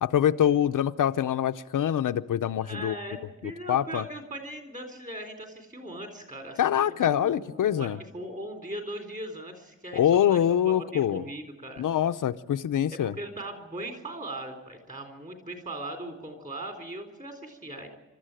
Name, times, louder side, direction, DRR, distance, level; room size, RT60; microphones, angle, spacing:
voice 1, 0.0-3.0 3.7-4.0 6.6-8.0 9.9-11.2 11.8-13.1, left 10 dB, 75° left, 8 dB, 0.7 m, -24 dB
voice 2, 2.6-11.8 12.9-17.9, right 1 dB, 25° right, 5 dB, 3.8 m, -39 dB
27.5 x 13.5 x 9.0 m, 1.1 s
wide cardioid pair, 175°, 32 cm